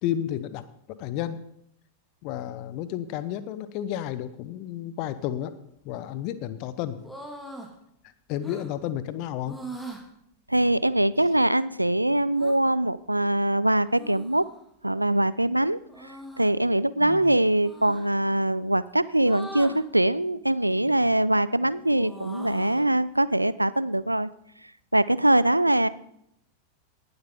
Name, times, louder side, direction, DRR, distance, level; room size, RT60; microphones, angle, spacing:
voice 1, 0.0-0.6 1.0-1.4 2.2-5.5 5.8-7.0 8.3-9.6 17.0-17.3, left 11 dB, 45° left, 14 dB, 0.7 m, -31 dB
sound 1, 7.0-7.7 8.4-8.7 9.4-10.0 12.3-12.6 13.9-14.6 15.9-16.5 17.6-18.1 19.2-19.8 20.7-21.2 21.6-22.9, right 1 dB, 5° left, 1.8 m, -41 dB
voice 2, 10.5-14.4 14.8-24.3 24.9-25.9, right 1 dB, 85° right, 17 dB, 0.4 m, -23 dB
18.0 x 8.0 x 3.7 m, 0.76 s
figure-of-eight pair, 90°, 0 cm